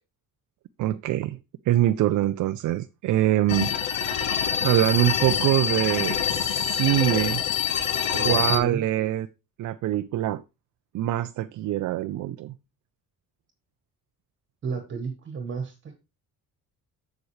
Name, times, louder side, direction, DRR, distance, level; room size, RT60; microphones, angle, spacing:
voice 1, 0.8-1.4 1.7-3.7 4.6-7.4 8.2-9.3 9.6-10.4 10.9-12.5, right 13 dB, 55° right, 0.5 m, -24 dB
sound 1, 3.5-8.6, left 8 dB, 70° left, 1.3 m, -25 dB
voice 2, 8.1-8.8 14.6-16.1, right 5 dB, 35° right, 1.3 m, -32 dB
7.6 x 7.1 x 3.2 m
cardioid pair, 160°, 35 cm